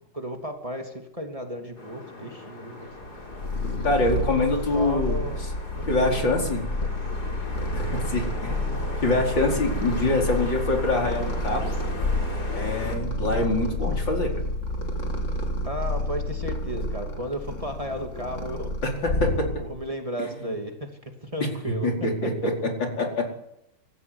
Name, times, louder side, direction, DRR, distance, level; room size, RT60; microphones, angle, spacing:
voice 1, 0.1-2.9 4.7-6.5 15.6-18.7 19.6-22.3, right 1 dB, 20° right, 3 dB, 2.9 m, -34 dB
sound 1, 1.8-13.0, left 2 dB, 60° left, 4.7 m, -38 dB
Purr, 3.0-19.9, left 1 dB, 40° left, 3.6 m, -29 dB
voice 2, 3.8-5.2 5.9-6.6 7.7-11.7 12.5-14.3 19.0-19.5 21.8-23.3, left 2 dB, 85° left, 1 dB, 5.3 m, -25 dB
26.0 x 14.5 x 9.8 m, 0.80 s
omnidirectional pair, 2.0 m